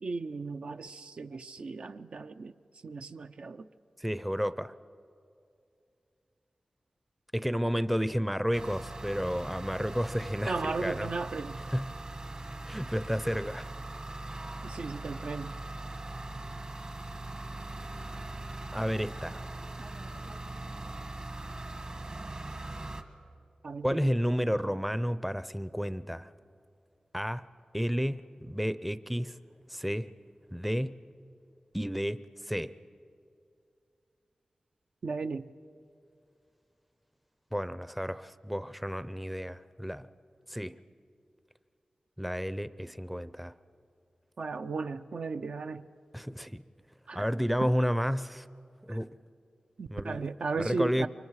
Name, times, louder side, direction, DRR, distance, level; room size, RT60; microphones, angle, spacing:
voice 1, 0.0-2.5 2.8-3.7 10.4-11.6 14.6-15.5 23.6-24.2 35.0-35.5 44.4-45.9 47.1-47.3 48.9-49.0 49.8-51.1, right 4 dB, 70° right, 8 dB, 0.6 m, -36 dB
voice 2, 4.0-4.7 7.3-11.1 11.7-12.0 12.7-13.7 18.7-19.4 23.8-26.3 27.1-27.5 27.7-29.4 29.7-30.1 30.5-31.0 31.7-32.7 37.5-40.1 40.5-40.7 42.2-43.5 46.1-46.6 47.1-48.5 48.9-49.1 49.9-50.3 50.6-51.1, equal, ahead, 13 dB, 0.5 m, -31 dB
sound 1, 8.5-23.0, right 2 dB, 45° right, 1.3 m, -40 dB
29.0 x 24.5 x 4.8 m, 2.5 s
wide cardioid pair, 85°, 2 cm